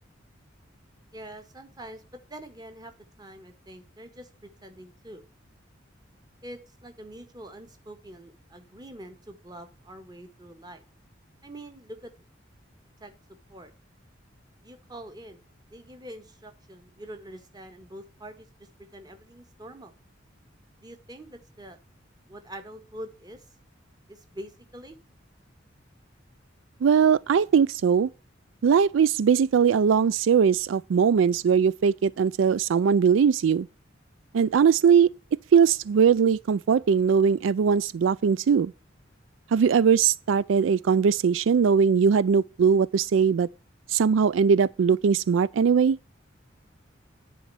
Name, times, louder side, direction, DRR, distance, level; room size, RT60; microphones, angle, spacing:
voice 1, 1.1-2.0 2.3-2.9 3.2-5.2 6.4-10.8 11.4-12.1 13.0-13.7 14.6-15.4 15.7-18.5 18.9-19.9 20.8-21.8 22.3-23.4 24.1-25.0, right 1 dB, 20° right, 1.7 m, -44 dB
voice 2, 26.8-28.1 28.6-33.7 34.3-35.1 35.5-38.7 39.5-43.5 43.9-46.0, right 6 dB, 85° right, 0.4 m, -20 dB
10.0 x 4.4 x 7.6 m
head